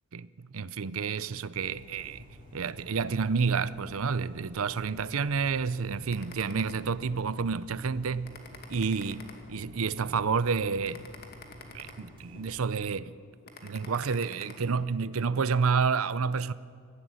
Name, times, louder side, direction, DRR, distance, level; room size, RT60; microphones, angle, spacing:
voice 1, 0.1-2.3 2.5-8.4 8.7-9.2 9.5-11.0 11.7-13.1 13.6-16.5, right 5 dB, 80° right, 0.6 m, -29 dB
sound 1, 1.5-12.7, equal, 25° right, 3.2 m, -50 dB
sound 2, 6.1-7.3 7.7-7.9 8.2-9.9 10.3-10.5 10.8-12.5 12.9-13.1 13.5-14.5, left 4 dB, 45° left, 2.2 m, -48 dB
18.0 x 15.5 x 9.6 m
head